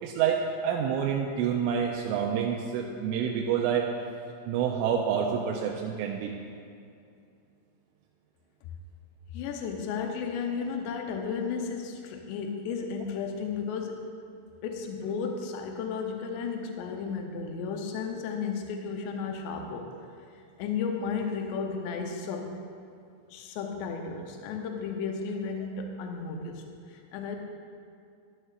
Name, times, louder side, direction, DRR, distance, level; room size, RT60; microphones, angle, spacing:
voice 1, 0.0-3.9 4.5-6.3, right 8 dB, 85° right, 0 dB, 3.1 m, -28 dB
voice 2, 9.3-14.0 14.6-19.9 20.6-22.6 23.3-27.4, left 5 dB, 80° left, 3 dB, 2.6 m, -33 dB
12.5 x 11.0 x 2.5 m, 2.4 s
omnidirectional pair, 5.6 m